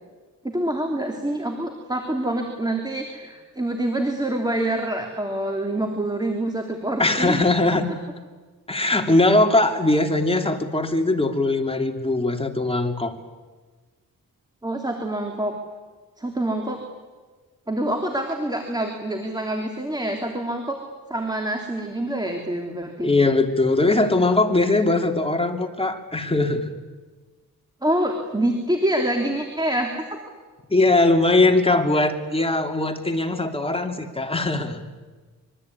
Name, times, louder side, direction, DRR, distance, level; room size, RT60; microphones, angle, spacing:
voice 1, 0.4-7.4 14.6-15.5 16.2-16.8 17.7-20.8 21.1-23.1 27.8-30.1, right 1 dB, 10° right, 3 dB, 3.3 m, -26 dB
voice 2, 7.0-7.8 8.7-13.1 23.0-26.7 30.7-34.8, left 2 dB, 15° left, 4 dB, 3.0 m, -20 dB
25.5 x 23.5 x 9.7 m, 1.4 s
cardioid pair, 95°, 36 cm